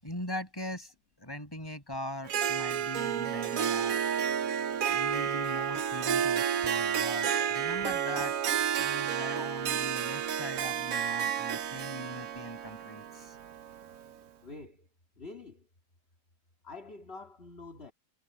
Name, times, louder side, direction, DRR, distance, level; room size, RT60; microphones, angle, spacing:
voice 1, 0.0-4.0 4.9-8.3 8.8-13.4, left 1 dB, 15° left, 6.6 m, -40 dB
Harp, 2.3-14.1, right 8 dB, 60° right, 1.3 m, -31 dB
voice 2, 14.4-14.9 15.2-15.7 16.6-17.9, left 3 dB, 40° left, 2.8 m, -46 dB
omnidirectional pair, 1.7 m